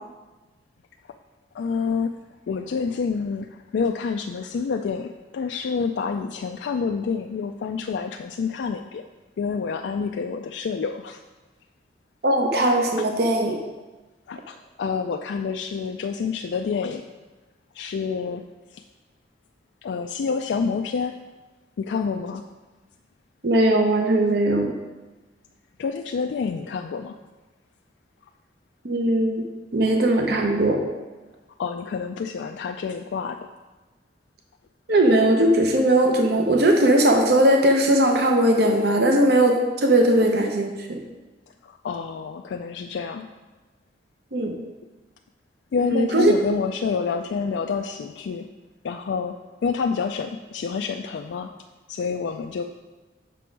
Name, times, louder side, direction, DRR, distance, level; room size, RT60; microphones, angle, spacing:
voice 1, 1.5-2.1 2.5-9.0 9.4-11.2 13.0-13.1 14.3-17.0 17.7-18.4 18.7-18.8 19.8-21.1 21.8-22.4 25.8-27.2 31.6-33.4 41.6-43.3 45.7-48.5 48.8-49.3 49.6-51.5 51.9-52.6, left 5 dB, 75° left, 4 dB, 0.3 m, -28 dB
voice 2, 12.2-13.6 23.4-24.7 28.8-29.4 29.7-30.8 34.9-41.0 44.3-44.5 45.8-46.3, right 1 dB, 60° right, 3 dB, 0.7 m, -19 dB
6.0 x 6.0 x 4.6 m, 1.2 s
head